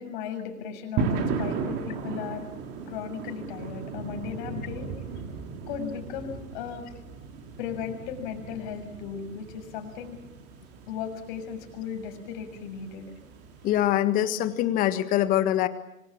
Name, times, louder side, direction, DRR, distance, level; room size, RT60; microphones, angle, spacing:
voice 1, 0.0-2.5 2.9-4.9 5.7-6.9 7.6-10.2 10.9-13.1, left 7 dB, 35° left, 5 dB, 6.7 m, -36 dB
sound 1, 1.0-13.9, right 5 dB, 25° right, 2.9 m, -36 dB
voice 2, 13.6-15.7, left 12 dB, 20° left, 12 dB, 1.5 m, -24 dB
27.0 x 25.5 x 7.4 m, 0.86 s
hypercardioid pair, 135°, 42 cm